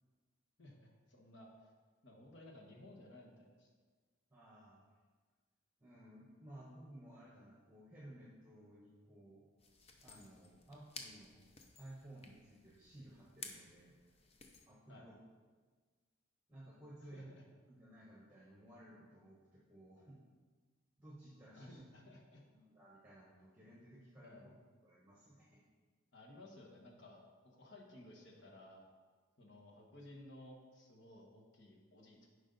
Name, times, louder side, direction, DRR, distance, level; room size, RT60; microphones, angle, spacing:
voice 1, 0.6-1.7 2.0-3.7 14.9-15.1 17.0-17.2 21.5-22.4 24.2-24.5 26.1-28.9 29.4-32.3, left 1 dB, 60° left, -1 dB, 1.4 m, -57 dB
voice 2, 4.3-4.8 5.8-9.4 10.0-11.4 11.8-13.9 14.7-15.2 16.5-17.3 17.7-20.2 21.0-21.8 22.5-24.4 24.8-25.6, right 1 dB, 10° right, -5 dB, 1.0 m, -57 dB
sound 1, 9.6-14.7, left 4 dB, 30° left, 0.7 m, -55 dB
10.5 x 5.2 x 4.0 m, 1.4 s
head